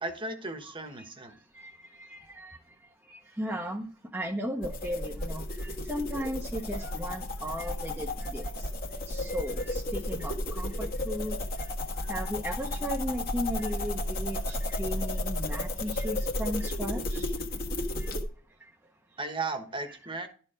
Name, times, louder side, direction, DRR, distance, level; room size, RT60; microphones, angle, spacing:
voice 1, 0.0-1.4 19.2-20.3, right 3 dB, 25° right, 1.2 m, -35 dB
voice 2, 1.5-2.6 3.1-3.9 4.1-8.7 9.1-11.7 12.1-17.3 18.0-18.1, equal, 10° right, 0.8 m, -36 dB
sound 1, 4.6-18.2, left 1 dB, 50° left, 1.7 m, -33 dB
12.0 x 4.5 x 5.0 m
head